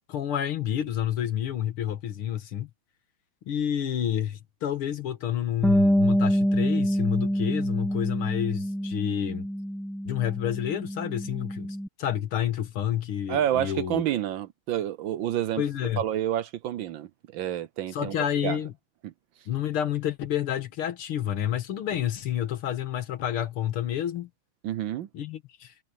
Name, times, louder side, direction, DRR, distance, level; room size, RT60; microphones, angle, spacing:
voice 1, 0.1-2.7 3.5-9.5 10.0-14.0 15.6-16.0 17.9-18.7 19.5-24.3 25.1-25.7, left 10 dB, 75° left, 2.3 m, -29 dB
Bass guitar, 5.6-11.9, equal, ahead, 0.7 m, -26 dB
voice 2, 13.3-15.6 16.0-18.2 18.4-18.6 19.0-19.1 24.6-25.1, right 11 dB, 70° right, 1.4 m, -29 dB
omnidirectional pair, 2.4 m